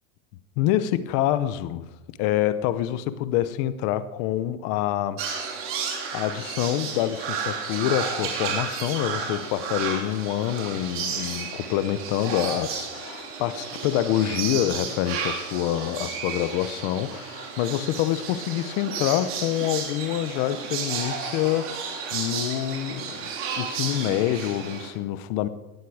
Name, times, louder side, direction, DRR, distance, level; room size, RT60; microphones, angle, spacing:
voice 1, 0.6-5.2 6.1-25.5, left 12 dB, 30° left, 14 dB, 0.8 m, -26 dB
sound 1, 5.2-24.9, right 6 dB, 30° right, 2.9 m, -32 dB
18.5 x 14.0 x 4.9 m, 1.1 s
supercardioid pair, 165°, 41 cm